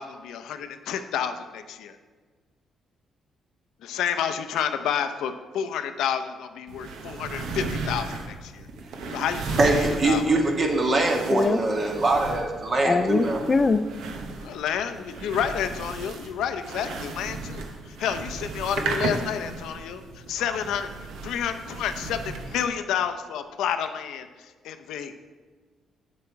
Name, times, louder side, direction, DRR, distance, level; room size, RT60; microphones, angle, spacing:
voice 1, 0.0-2.0 3.8-8.7 9.1-10.2 14.4-20.9 21.2-25.1, left 8 dB, 85° left, 9 dB, 0.6 m, -30 dB
sound 1, 6.7-22.7, right 3 dB, 85° right, 0.9 m, -35 dB
voice 2, 9.6-13.4, right 2 dB, 40° right, 1 dB, 1.5 m, -23 dB
voice 3, 11.3-11.6 12.8-13.8, left 3 dB, 30° left, 11 dB, 0.3 m, -22 dB
7.5 x 7.0 x 4.6 m, 1.4 s
cardioid pair, 90°, 0 cm